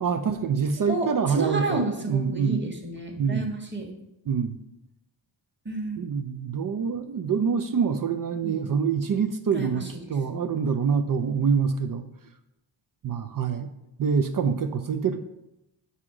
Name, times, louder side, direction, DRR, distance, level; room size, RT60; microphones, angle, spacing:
voice 1, 0.0-2.7 3.2-3.5 4.3-4.6 6.0-12.1 13.0-13.7 14.0-15.2, right 6 dB, 45° right, 8 dB, 0.5 m, -26 dB
voice 2, 0.9-3.9 5.6-6.0 8.4-8.6 9.5-9.9, right 3 dB, 20° right, 2 dB, 1.5 m, -30 dB
4.9 x 4.2 x 4.9 m, 0.91 s
cardioid pair, 55°, 49 cm